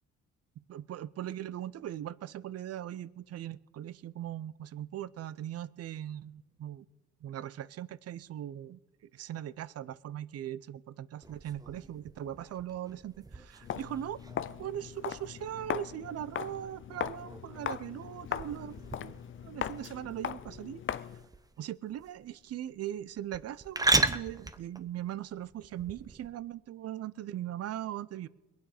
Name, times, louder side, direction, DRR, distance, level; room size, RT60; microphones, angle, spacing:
voice 1, 0.7-6.9 7.2-8.8 9.1-14.2 14.6-20.8 21.6-28.3, right 11 dB, 55° right, 20 dB, 0.5 m, -40 dB
sound 1, 11.2-26.3, right 2 dB, 10° right, 0.7 m, -37 dB
Walk footsteps, 13.6-21.3, left 9 dB, 40° left, 0.5 m, -39 dB
22.0 x 9.2 x 4.9 m, 1.1 s
cardioid pair, 90°, 30 cm